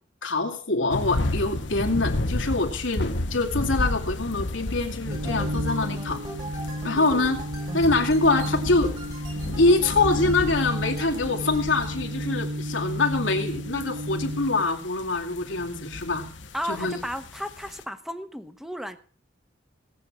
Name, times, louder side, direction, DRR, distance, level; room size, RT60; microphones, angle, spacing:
voice 1, 0.2-6.2 6.8-7.4 7.7-8.9 9.6-16.2 16.7-17.0, left 3 dB, 90° left, 2 dB, 2.3 m, -24 dB
sound 1, 0.9-17.8, left 1 dB, 70° left, 1.1 m, -33 dB
sound 2, 5.0-14.6, equal, 65° right, 1.1 m, -32 dB
sound 3, 5.1-12.0, equal, 20° right, 2.2 m, -40 dB
voice 2, 16.5-19.0, equal, ahead, 10 dB, 1.1 m, -34 dB
17.5 x 8.1 x 6.1 m, 0.43 s
head